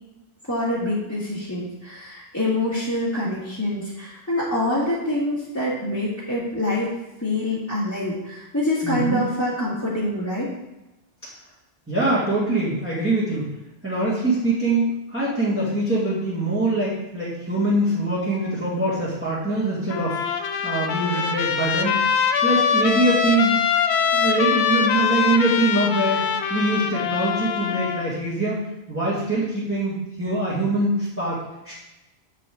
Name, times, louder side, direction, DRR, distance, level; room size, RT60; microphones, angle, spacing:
voice 1, 0.5-6.9 7.2-10.5, left 1 dB, 15° left, -10 dB, 1.6 m, -25 dB
voice 2, 8.8-9.2 11.9-13.5 13.8-21.9 22.4-23.6 24.1-28.6 28.9-31.4 31.6-31.7, right 2 dB, 10° right, -10 dB, 1.9 m, -23 dB
Trumpet, 19.9-28.1, left 7 dB, 80° left, 0.9 m, -23 dB
7.5 x 5.4 x 3.7 m, 0.99 s
omnidirectional pair, 1.1 m